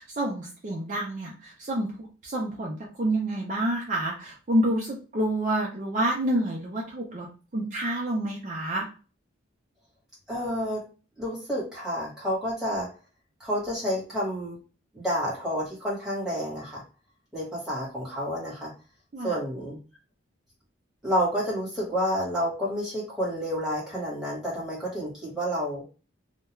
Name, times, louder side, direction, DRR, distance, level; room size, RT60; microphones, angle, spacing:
voice 1, 0.0-7.3 7.5-8.9 19.1-19.4, right 1 dB, 40° right, -2 dB, 0.4 m, -28 dB
voice 2, 10.3-10.8 11.2-12.9 13.4-14.6 14.9-16.8 17.3-18.7 19.2-19.8 21.0-25.8, equal, 5° right, -6 dB, 1.1 m, -29 dB
2.3 x 2.2 x 2.9 m, 0.34 s
head